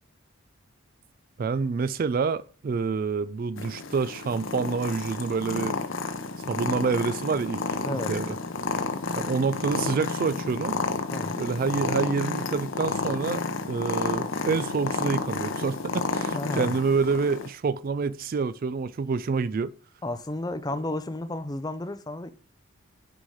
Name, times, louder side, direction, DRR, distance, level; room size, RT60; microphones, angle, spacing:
voice 1, 1.4-5.8 6.5-7.6 7.9-8.4 9.2-10.8 11.4-13.4 13.7-19.7, right 5 dB, 40° right, 0.3 m, -27 dB
Purr, 3.6-17.5, left 4 dB, 60° left, 0.8 m, -31 dB
voice 2, 11.1-11.4 16.3-16.8 20.0-22.3, left 1 dB, 20° left, 0.5 m, -32 dB
6.2 x 4.9 x 5.6 m
head